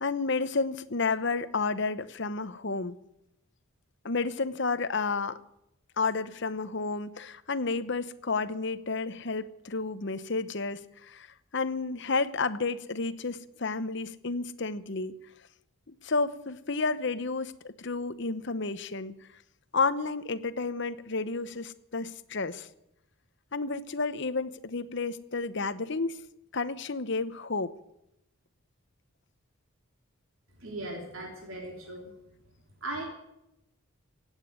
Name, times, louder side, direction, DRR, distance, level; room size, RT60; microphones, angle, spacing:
voice 1, 0.0-3.0 4.0-5.4 6.0-11.3 11.5-15.1 15.9-19.1 19.7-22.7 23.5-26.2 26.5-27.7, left 4 dB, 55° left, 13 dB, 0.9 m, -31 dB
voice 2, 30.6-32.1 32.8-33.0, right 1 dB, 70° right, 1 dB, 3.4 m, -38 dB
16.5 x 9.0 x 9.4 m, 0.83 s
head